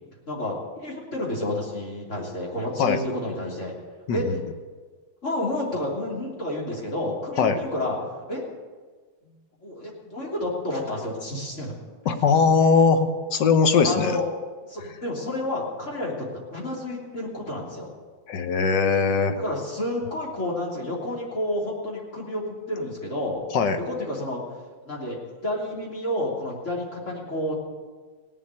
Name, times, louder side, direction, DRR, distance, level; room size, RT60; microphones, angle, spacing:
voice 1, 0.3-3.7 4.1-4.3 5.2-8.0 8.3-8.4 9.2-9.3 9.6-11.7 13.8-14.3 14.7-16.1 16.5-17.9 19.4-23.4 23.8-24.4 24.8-27.5, left 1 dB, 35° left, -3 dB, 3.7 m, -30 dB
voice 2, 12.0-14.2 18.3-19.4 23.5-23.8, left 5 dB, 65° left, 7 dB, 1.6 m, -20 dB
17.5 x 7.5 x 9.8 m, 1.5 s
omnidirectional pair, 2.2 m